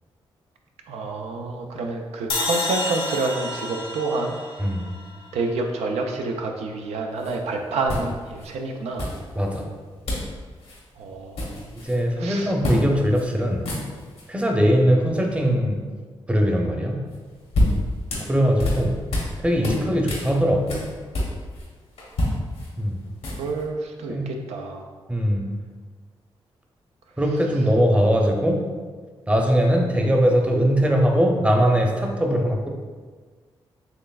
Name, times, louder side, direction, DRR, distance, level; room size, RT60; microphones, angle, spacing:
voice 1, 0.9-4.4 5.3-9.1 11.0-11.7 12.2-12.5 22.2-22.4 23.3-24.9, right 3 dB, 90° right, 2 dB, 0.4 m, -28 dB
sound 1, 2.3-5.5, left 2 dB, 55° left, 0.7 m, -30 dB
sound 2, 7.2-7.3 7.9-8.5 9.0-9.6 10.1-10.3 10.6-10.8 11.1-12.0 12.6-12.8 13.1-13.3 13.5-14.3 17.1-19.3 19.6-21.7 22.0-23.6, left 1 dB, 75° left, 1.0 m, -27 dB
voice 2, 9.4-9.7 11.8-13.7 14.3-15.8 16.3-17.0 18.3-19.0 19.4-20.9 22.8-23.0 24.1-24.3 25.1-25.5 27.2-28.6 29.3-32.7, equal, 10° right, 1 dB, 0.6 m, -21 dB
4.3 x 3.1 x 2.4 m, 1.5 s
cardioid pair, 60°, 11 cm